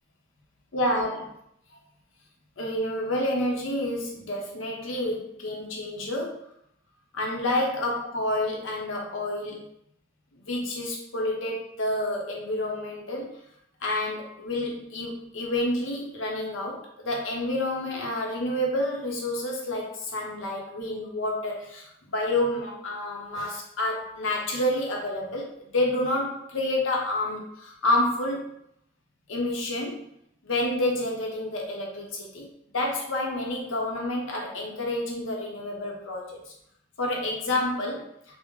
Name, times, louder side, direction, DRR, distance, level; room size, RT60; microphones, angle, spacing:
voice 1, 0.7-1.2 2.6-6.5 7.1-9.6 10.5-13.4 13.8-28.6 29.3-30.0 30.4-32.5 32.7-36.4 37.0-38.1, left 1 dB, 80° left, 0 dB, 0.7 m, -29 dB
3.5 x 2.0 x 3.0 m, 0.73 s
head